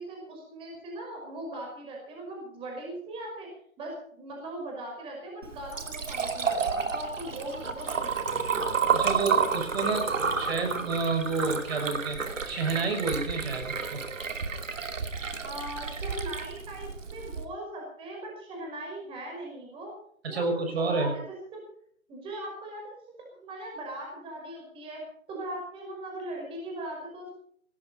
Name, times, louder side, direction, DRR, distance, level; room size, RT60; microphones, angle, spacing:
voice 1, 0.0-3.5 3.8-8.5 15.4-19.9 20.3-20.5 20.9-21.2 21.5-21.6 22.1-25.0 25.3-27.3, right 1 dB, 15° right, 0 dB, 5.4 m, -39 dB
Liquid, 5.4-17.4, right 6 dB, 65° right, 2.7 m, -31 dB
voice 2, 8.9-14.0 20.2-21.1, right 3 dB, 50° right, 5 dB, 6.4 m, -30 dB
18.5 x 16.0 x 4.3 m, 0.62 s
figure-of-eight pair, 145°, 41 cm